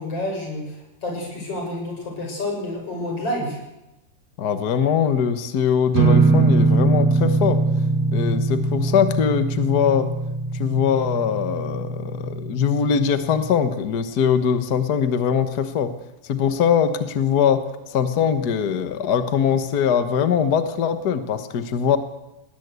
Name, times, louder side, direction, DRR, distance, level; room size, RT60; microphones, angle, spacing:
voice 1, 0.0-3.6, left 1 dB, 45° left, 1 dB, 7.6 m, -29 dB
voice 2, 4.4-7.6 8.1-10.1 10.5-15.9 16.3-17.6 17.9-22.0, left 7 dB, 65° left, 10 dB, 0.9 m, -21 dB
sound 1, 5.9-13.5, right 3 dB, 55° right, 3.0 m, -22 dB
19.5 x 17.5 x 8.2 m, 0.95 s
omnidirectional pair, 3.7 m